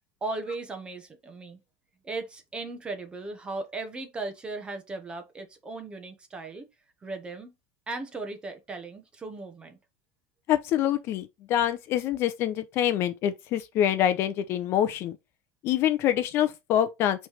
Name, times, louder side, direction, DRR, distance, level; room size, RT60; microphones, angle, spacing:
voice 1, 0.2-1.6 2.0-6.7 7.0-7.5 7.9-9.8, right 3 dB, 15° right, 1.0 m, -37 dB
voice 2, 10.5-15.2 15.6-17.3, left 11 dB, 35° left, 0.6 m, -25 dB
6.0 x 3.3 x 5.0 m
supercardioid pair, 165°, 7 cm